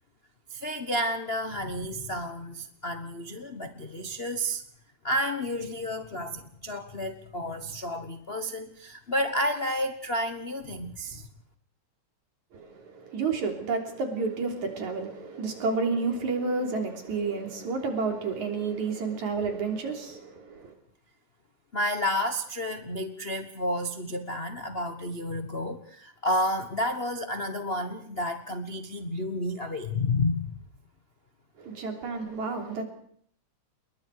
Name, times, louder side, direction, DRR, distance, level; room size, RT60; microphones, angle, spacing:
voice 1, 0.5-4.6 5.0-11.3 21.7-30.6, left 1 dB, 85° left, 0.5 m, -31 dB
voice 2, 12.5-20.7 31.6-32.8, right 4 dB, 75° right, 4.8 m, -30 dB
28.0 x 22.0 x 4.8 m
omnidirectional pair, 3.4 m